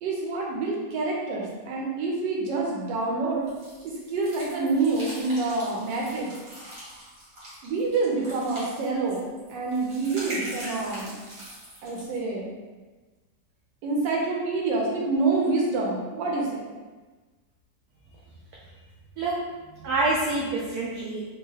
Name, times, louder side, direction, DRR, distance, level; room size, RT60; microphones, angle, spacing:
voice 1, 0.0-3.5 3.8-6.3 7.6-11.2 11.8-12.5 13.8-16.7, right 3 dB, 90° right, -2 dB, 1.3 m, -27 dB
sound 1, 3.5-12.2, right 1 dB, 55° right, 1.7 m, -42 dB
voice 2, 19.2-21.3, right 2 dB, 70° right, -5 dB, 1.0 m, -27 dB
3.5 x 2.4 x 3.2 m, 1.3 s
omnidirectional pair, 1.9 m